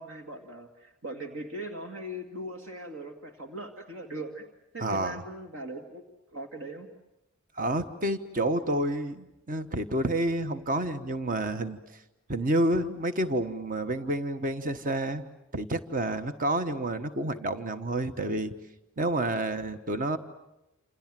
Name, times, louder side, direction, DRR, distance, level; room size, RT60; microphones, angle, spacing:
voice 1, 0.0-4.4 4.7-6.0 6.3-6.9, right 1 dB, 65° right, 4 dB, 2.2 m, -40 dB
voice 2, 4.8-5.2 7.6-12.0 12.3-15.2 15.5-18.5 19.0-20.2, right 1 dB, 40° right, 9 dB, 1.2 m, -29 dB
28.0 x 27.5 x 7.6 m, 0.91 s
head